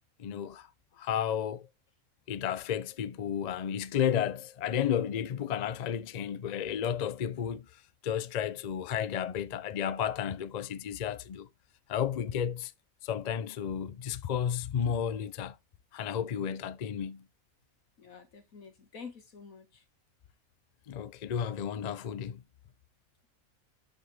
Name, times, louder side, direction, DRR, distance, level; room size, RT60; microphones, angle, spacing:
voice 1, 0.2-0.7 1.0-1.7 2.3-7.7 8.0-11.5 11.9-12.7 13.0-15.6 15.9-17.2 20.9-22.4, left 8 dB, 60° left, 0.4 m, -32 dB
voice 2, 18.0-19.6, left 5 dB, 80° left, 1.9 m, -48 dB
11.0 x 4.2 x 3.4 m
omnidirectional pair, 1.4 m